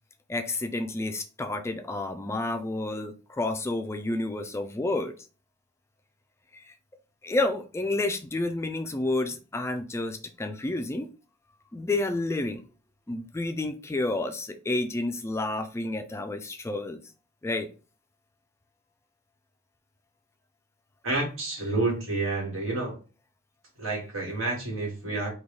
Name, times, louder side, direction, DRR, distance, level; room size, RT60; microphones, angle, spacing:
voice 1, 0.3-5.1 6.5-6.7 7.2-11.1 11.7-12.6 13.1-17.0 17.4-17.7, left 2 dB, 15° left, 0.3 m, -30 dB
voice 2, 21.0-23.0 23.8-25.3, right 2 dB, 85° right, 1.5 m, -29 dB
3.7 x 2.3 x 3.2 m
head